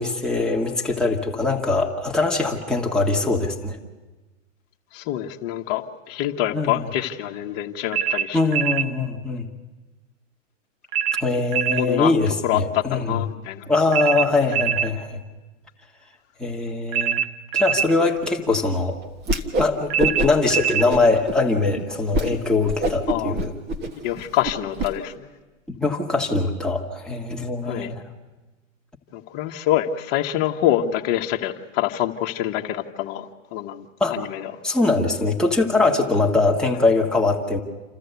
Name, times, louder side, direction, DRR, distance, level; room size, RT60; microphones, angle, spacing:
voice 1, 0.0-3.8 6.5-6.9 8.3-9.5 11.2-13.2 13.7-15.2 16.4-17.2 17.5-19.0 19.6-23.5 25.7-28.0 34.0-34.2 34.6-37.6, left 3 dB, ahead, -2 dB, 1.7 m, -22 dB
voice 2, 4.9-8.4 11.8-13.6 14.1-14.3 23.1-23.3 24.0-25.3 27.6-27.9 29.1-33.8 34.1-34.5, left 12 dB, 40° left, 3 dB, 1.4 m, -26 dB
sound 1, 7.9-8.9 10.9-11.9 13.9-14.9 16.9-17.9 19.9-20.9, right 8 dB, 40° right, 0.9 m, -23 dB
Whoosh swoosh swish, 19.2-19.7 20.0-20.5 20.9-21.4 21.8-21.9 22.1-22.3 22.6-24.9, right 1 dB, 25° right, 1.5 m, -25 dB
28.5 x 14.0 x 8.2 m, 1.2 s
hypercardioid pair, 130°, 39 cm